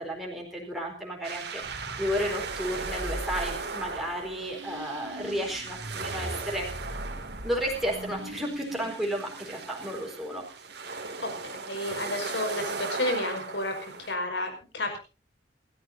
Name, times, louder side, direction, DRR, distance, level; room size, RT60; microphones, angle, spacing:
voice 1, 0.0-6.7 7.4-10.7, equal, ahead, -2 dB, 4.2 m, -33 dB
sound 1, 1.2-14.1, right 4 dB, 65° right, 2.6 m, -38 dB
sound 2, 1.6-10.2, equal, 85° right, 3.3 m, -41 dB
voice 2, 10.9-15.0, left 1 dB, 70° left, 5 dB, 5.3 m, -32 dB
28.0 x 13.0 x 2.7 m, 0.32 s
head